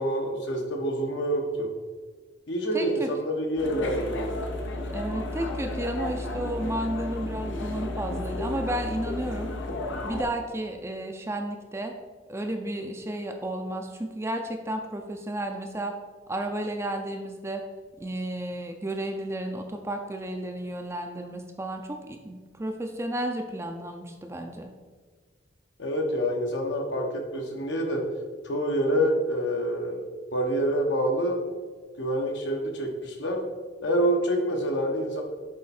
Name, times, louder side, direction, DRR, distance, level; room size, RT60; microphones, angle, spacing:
voice 1, 0.0-1.7 2.5-4.3 25.8-28.0 28.4-31.4 32.0-33.4 33.8-35.2, equal, 75° left, 2 dB, 1.1 m, -27 dB
voice 2, 2.7-3.1 4.9-9.5 10.0-11.9 12.3-15.9 16.3-17.6 18.0-24.7, right 1 dB, 15° right, 4 dB, 0.4 m, -32 dB
sound 1, 3.6-10.2, left 2 dB, 90° left, 0.8 m, -33 dB
8.5 x 3.5 x 4.2 m, 1.4 s
head